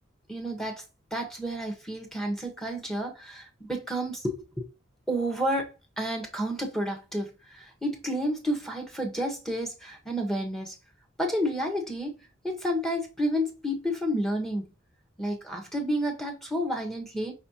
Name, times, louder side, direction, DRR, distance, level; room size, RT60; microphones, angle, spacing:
voice 1, 0.3-0.8 1.1-4.7 5.1-5.7 6.0-10.7 11.2-12.1 12.4-14.7 15.2-17.3, equal, ahead, 1.2 m, -30 dB
5.5 x 3.2 x 2.8 m
head